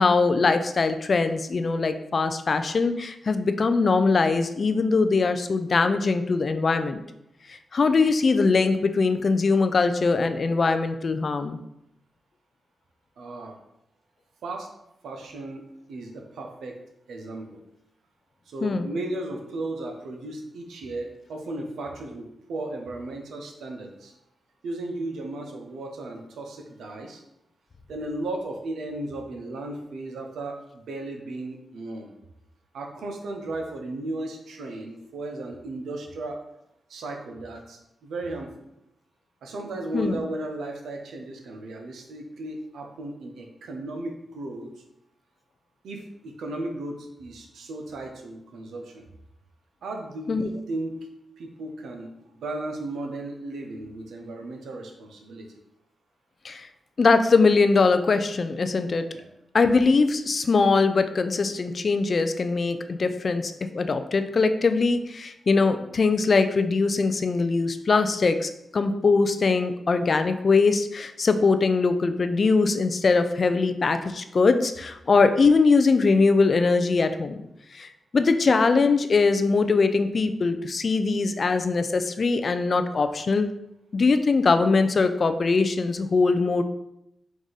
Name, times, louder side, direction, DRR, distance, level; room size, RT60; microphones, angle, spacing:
voice 1, 0.0-7.0 7.5-11.6 18.6-18.9 39.9-40.2 50.3-50.5 56.4-56.7 57.0-59.0 59.5-77.3 77.7-83.5 83.9-86.6, left 4 dB, 55° left, 9 dB, 0.4 m, -22 dB
voice 2, 13.2-13.6 14.4-14.7 15.0-15.6 15.9-16.8 17.1-17.6 18.5-24.1 24.6-27.2 27.9-32.1 32.7-36.4 36.9-38.7 39.4-44.7 45.8-49.1 49.8-51.1 51.4-55.5 59.1-59.3, right 2 dB, 85° right, 3 dB, 0.7 m, -35 dB
4.8 x 2.6 x 3.8 m, 0.83 s
cardioid pair, 55°, 0 cm